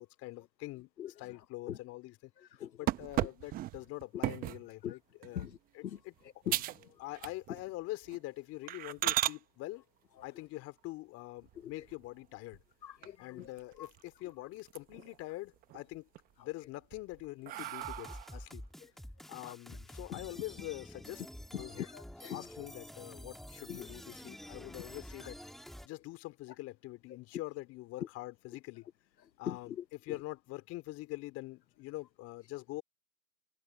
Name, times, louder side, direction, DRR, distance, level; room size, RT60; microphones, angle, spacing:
voice 1, 0.0-2.3 2.8-6.1 7.0-9.8 10.2-12.6 13.2-16.1 16.4-18.7 19.3-21.2 21.5-21.9 22.3-25.4 25.8-28.9 29.4-32.8, left 18 dB, 30° left, 3.5 m, -44 dB
sound 1, 2.9-4.7 5.2-5.5 6.0-6.1 6.5-6.8 7.1-7.7 8.0-8.2 8.7-9.4 11.4-12.1 12.5-12.6 13.0-13.1 13.4-14.2 14.6-15.2 15.6-16.2 16.7-18.4, right 14 dB, 15° right, 0.9 m, -36 dB
voice 2, 6.5-6.9 11.6-11.7 12.8-13.5 13.8-13.9 19.4-19.5 20.1-20.2 21.5-22.4 23.7-23.9 29.5-29.8, left 10 dB, 90° left, 1.0 m, -41 dB
sound 2, 17.6-25.9, equal, ahead, 1.5 m, -49 dB
hypercardioid pair, 130°, 50 cm